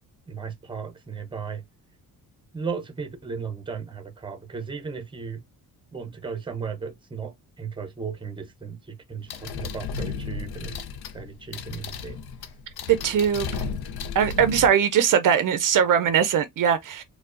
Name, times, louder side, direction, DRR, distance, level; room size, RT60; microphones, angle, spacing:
voice 1, 0.3-1.6 2.5-5.4 5.9-10.8 11.1-12.2, right 5 dB, 15° right, 0.7 m, -35 dB
sound 1, 9.3-14.7, left 5 dB, 80° left, 0.6 m, -34 dB
voice 2, 12.9-13.6 14.2-17.0, right 8 dB, 60° right, 0.5 m, -21 dB
4.5 x 2.2 x 2.4 m
cardioid pair, 120°, 37 cm